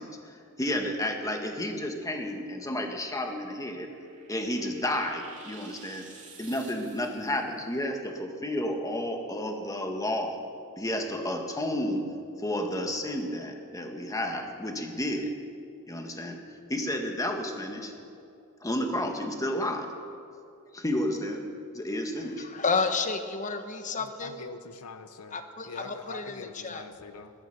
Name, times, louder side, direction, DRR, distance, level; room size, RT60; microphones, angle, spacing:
voice 1, 0.0-3.9 4.3-6.0 6.4-10.3 10.8-12.0 12.4-15.3 15.9-16.4 16.7-17.9 18.6-19.9 20.7-21.4 21.7-22.5, left 1 dB, 15° left, 3 dB, 1.5 m, -31 dB
sound 1, 3.5-7.4, right 4 dB, 35° right, 2.8 m, -51 dB
voice 2, 22.4-24.4 25.3-26.8, left 4 dB, 35° left, 8 dB, 1.0 m, -31 dB
voice 3, 24.0-25.4 25.7-27.3, left 4 dB, 80° left, 9 dB, 0.8 m, -43 dB
16.5 x 12.5 x 6.7 m, 2.5 s
head